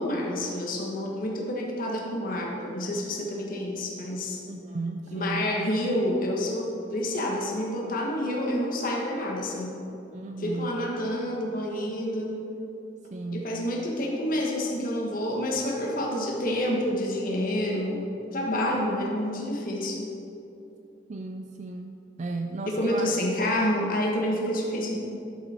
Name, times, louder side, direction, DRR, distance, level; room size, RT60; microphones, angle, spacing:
voice 1, 0.0-4.4 5.1-9.8 10.4-12.4 13.3-20.1 22.7-24.9, left 1 dB, 45° left, -2 dB, 1.4 m, -28 dB
voice 2, 4.5-5.5 10.1-10.8 13.1-13.5 21.1-23.2, right 3 dB, 40° right, 3 dB, 0.4 m, -34 dB
11.5 x 7.0 x 4.4 m, 2.8 s
head